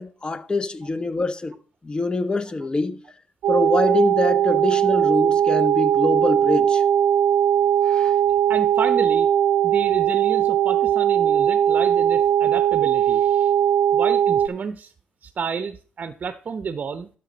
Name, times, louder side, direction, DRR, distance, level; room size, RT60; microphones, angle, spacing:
voice 1, 0.0-1.6 1.8-3.0 3.5-6.8 7.8-8.2, left 3 dB, 25° left, 1.1 m, -24 dB
sound 1, 3.4-14.5, right 10 dB, 75° right, 0.4 m, -19 dB
voice 2, 8.5-9.3 9.6-13.5 13.9-14.9 15.2-17.1, right 6 dB, 45° right, 0.8 m, -30 dB
12.5 x 5.1 x 4.0 m
supercardioid pair, 65°, 4 cm